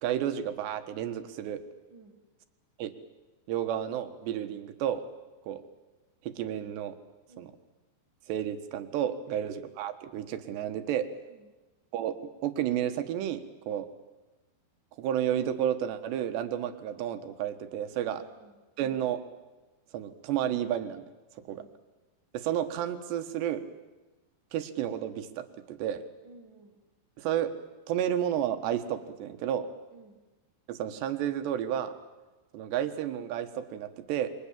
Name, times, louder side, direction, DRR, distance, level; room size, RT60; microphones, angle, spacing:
voice 1, 0.0-1.6 2.8-2.9 3.5-5.0 5.5-5.6 6.2-7.0 7.4-7.5 8.3-11.1 11.9-12.2 12.4-13.9 15.0-18.2 18.8-19.2 19.9-21.0 21.5-21.6 22.3-23.6 24.5-26.0 27.2-27.5 27.9-29.7 30.7-31.9 32.5-34.3, right 10 dB, 85° right, 9 dB, 3.5 m, -31 dB
voice 2, 1.9-2.2 7.3-7.5 11.3-11.5 17.9-18.6 21.5-21.7 26.2-26.8 29.9-30.2, right 3 dB, 45° right, 2 dB, 1.6 m, -55 dB
29.0 x 23.5 x 7.4 m, 1.1 s
omnidirectional pair, 4.8 m